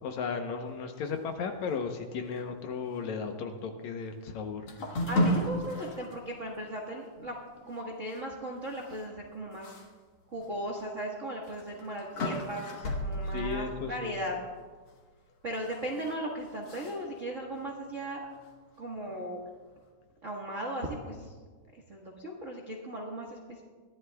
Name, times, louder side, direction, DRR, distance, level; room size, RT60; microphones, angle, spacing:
voice 1, 0.0-4.7 13.3-14.2, left 5 dB, 70° left, 5 dB, 2.0 m, -35 dB
sound 1, 4.7-6.2 6.6-6.7 7.2-7.3 8.9-9.0 9.6-9.8 10.3-10.4 11.5-14.7 15.5-16.1 16.6-17.0, equal, 50° left, 2.0 m, -33 dB
voice 2, 5.1-7.4 7.7-9.7 10.3-14.4 15.4-18.2 18.8-19.4 20.2-21.3 21.9-23.6, right 1 dB, 50° right, -2 dB, 0.9 m, -37 dB
22.0 x 14.0 x 2.3 m, 1.4 s
omnidirectional pair, 3.7 m